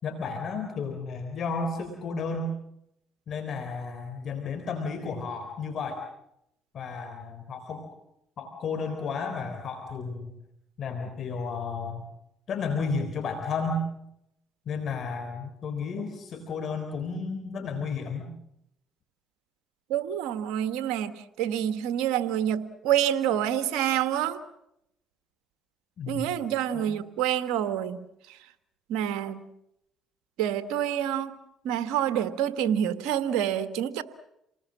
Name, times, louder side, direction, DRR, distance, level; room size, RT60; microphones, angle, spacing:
voice 1, 0.0-2.5 3.3-6.0 6.7-7.9 8.4-10.3 10.8-12.0 12.5-13.8 14.7-18.3 26.0-26.3 26.7-26.9, left 4 dB, 55° left, 6 dB, 3.7 m, -32 dB
voice 2, 19.9-21.1 21.4-24.4 26.1-28.0 28.9-29.4 30.4-31.3 31.6-34.0, right 10 dB, 80° right, 10 dB, 1.6 m, -27 dB
28.0 x 20.0 x 7.5 m, 0.79 s
supercardioid pair, 65°, 0 cm